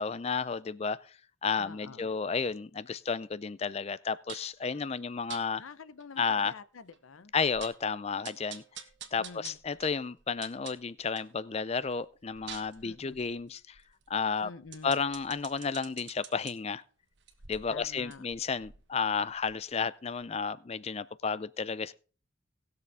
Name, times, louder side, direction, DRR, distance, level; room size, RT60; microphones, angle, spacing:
voice 1, 0.0-5.6 6.2-6.5 7.3-8.6 9.1-13.8 14.1-14.5 14.8-16.8 17.5-21.9, left 5 dB, 30° left, 0.4 m, -32 dB
voice 2, 1.6-2.4 4.7-4.9 5.6-7.3 9.2-9.6 12.8-13.2 14.4-15.0 17.7-18.3, left 4 dB, 85° left, 0.7 m, -48 dB
sound 1, 4.3-4.6 5.3-5.5 6.0-6.1 6.4-6.5 6.9-7.0 7.4-7.9 8.2-11.3 11.7-16.5 17.1-19.8 20.2-20.3, right 8 dB, 60° right, 1.3 m, -49 dB
19.0 x 6.8 x 3.4 m
head